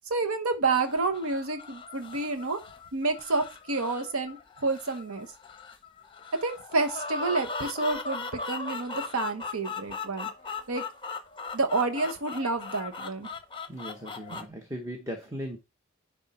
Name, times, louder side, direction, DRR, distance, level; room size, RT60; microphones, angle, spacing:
voice 1, 0.1-2.6 2.9-5.3 6.3-10.3 10.7-10.8 11.5-13.3 14.3-14.4, right 3 dB, 80° right, 1.0 m, -29 dB
sound 1, 0.8-14.5, left 4 dB, 25° left, 0.8 m, -38 dB
voice 2, 13.7-15.6, equal, 15° right, 1.0 m, -38 dB
10.0 x 3.6 x 4.2 m
head